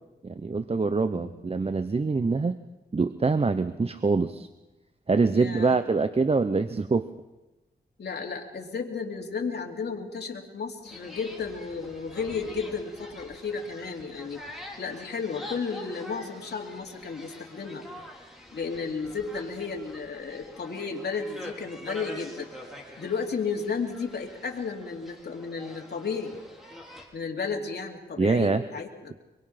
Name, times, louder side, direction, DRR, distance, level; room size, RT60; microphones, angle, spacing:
voice 1, 0.2-2.6 2.9-4.5 5.1-7.1 28.2-28.6, right 4 dB, 35° right, 11 dB, 0.9 m, -24 dB
voice 2, 5.3-5.8 8.0-14.4 14.8-17.9 18.5-22.5 23.0-26.3 27.1-29.2, left 5 dB, 75° left, 0 dB, 2.9 m, -33 dB
sound 1, 10.8-27.1, left 1 dB, ahead, 5.2 m, -45 dB
25.0 x 22.5 x 5.9 m, 1.0 s
cardioid pair, 70°, 17 cm